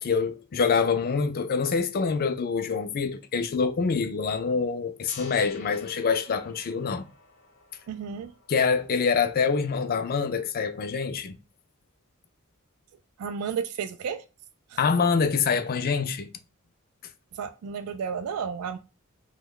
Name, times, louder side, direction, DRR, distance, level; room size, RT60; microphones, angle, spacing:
voice 1, 0.0-7.0 8.5-11.4 14.8-16.3, left 5 dB, 45° left, 0.4 m, -25 dB
Gong, 5.1-11.0, left 5 dB, 60° left, 0.7 m, -49 dB
voice 2, 7.9-8.3 13.2-14.2 14.7-14.8 17.3-18.8, right 6 dB, 85° right, 0.3 m, -32 dB
3.0 x 2.2 x 3.6 m
head